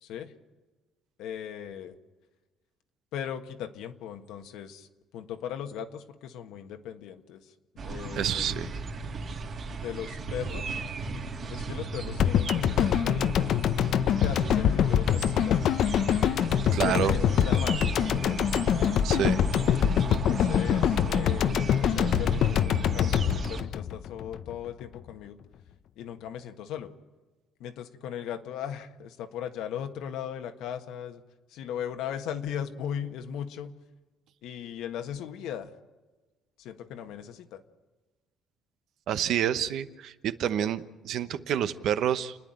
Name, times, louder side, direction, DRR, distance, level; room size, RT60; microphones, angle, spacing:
voice 1, 0.0-0.3 1.2-1.9 3.1-4.9 5.1-7.5 7.8-8.4 9.7-10.8 11.5-13.8 14.2-15.8 16.8-18.4 20.1-25.4 26.0-26.9 27.6-31.2 31.5-33.7 34.4-35.7 36.6-37.6, left 9 dB, 80° left, 6 dB, 1.6 m, -38 dB
sound 1, 7.8-23.6, right 4 dB, 40° right, 2.5 m, -36 dB
voice 2, 8.2-8.7 16.7-17.1 19.0-19.4 39.1-42.4, right 9 dB, 65° right, 12 dB, 1.0 m, -28 dB
sound 2, 12.2-24.5 24.8-24.9, left 9 dB, 60° left, 0.7 m, -25 dB
30.0 x 10.0 x 9.0 m, 1.2 s
cardioid pair, 130°, 0 cm